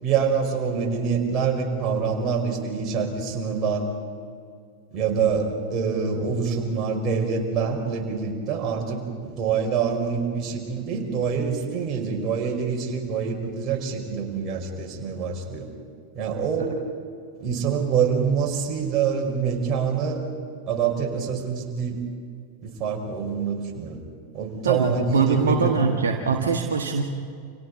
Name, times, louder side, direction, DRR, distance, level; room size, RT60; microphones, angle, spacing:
voice 1, 0.0-3.8 4.9-15.7 16.1-16.7 17.4-20.2 20.7-22.0 22.6-24.0 24.3-25.9 26.2-26.4, right 6 dB, 30° right, 1 dB, 4.7 m, -26 dB
voice 2, 24.6-27.0, right 5 dB, 65° right, 3 dB, 1.6 m, -23 dB
29.5 x 27.0 x 4.0 m, 2.2 s
figure-of-eight pair, 90°, 0 cm